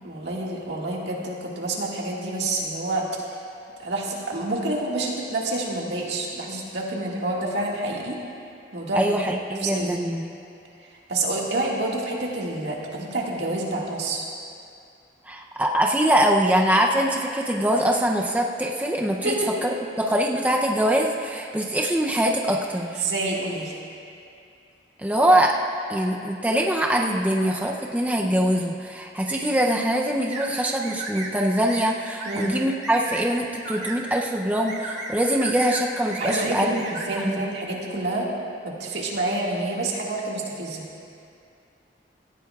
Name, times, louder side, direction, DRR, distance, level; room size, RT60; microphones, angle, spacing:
voice 1, 0.0-3.4 3.8-8.2 8.7-9.1 9.6-10.0 11.1-14.2 19.2-19.5 22.9-23.7 32.2-32.5 36.2-38.3 38.6-40.8, right 2 dB, 85° right, -3 dB, 1.9 m, -28 dB
voice 2, 8.9-10.3 15.3-19.3 19.6-19.7 20.0-23.0 25.0-25.5 25.9-36.8 37.1-37.5, right 1 dB, 10° right, 0 dB, 0.5 m, -23 dB
sound 1, 29.3-29.5 30.3-30.5 30.8-31.3 31.7-31.9 32.2-32.5 32.8-33.2 33.6-34.0 34.5-35.1 35.4-35.8 36.1-37.1, right 3 dB, 40° right, 1.2 m, -34 dB
17.5 x 14.5 x 2.4 m, 2.5 s
head